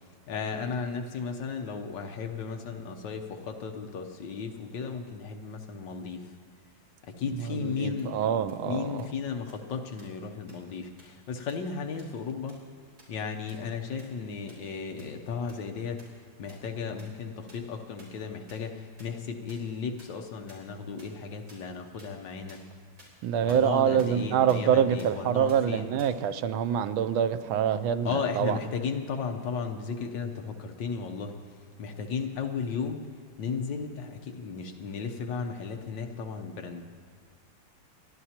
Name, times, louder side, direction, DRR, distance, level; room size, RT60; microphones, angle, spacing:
voice 1, 0.3-6.3 7.0-12.6 13.1-16.1 16.4-22.6 23.4-25.9 28.0-31.4 31.8-33.1 33.4-36.8, left 5 dB, 65° left, 5 dB, 1.5 m, -35 dB
voice 2, 7.5-9.1 23.2-28.6, right 8 dB, 85° right, 11 dB, 1.4 m, -26 dB
sound 1, 8.0-8.1 8.5-8.6 9.0-9.1 9.5-9.6 10.0-10.1 10.5-10.6 11.0-11.1 11.5-11.6 12.0-12.1 12.5-12.6 13.0-13.1 13.5-13.6 14.0-14.1 14.5-14.6 15.0-15.1 15.5-15.6 16.0-16.1 16.5-16.6 17.0-17.1 17.5-17.6 18.0-18.1 18.5-18.6 19.0-19.1 19.5-19.6 20.0-20.1 20.5-20.6 21.0-21.1 21.5-21.6 22.0-22.1 22.5-22.6 23.0-23.1 23.5-23.6 24.0-24.1 24.5-24.6 25.0-25.1 25.5-25.6 26.0-26.1, right 1 dB, 45° right, 4.4 m, -52 dB
29.5 x 11.5 x 2.9 m, 2.1 s
omnidirectional pair, 2.2 m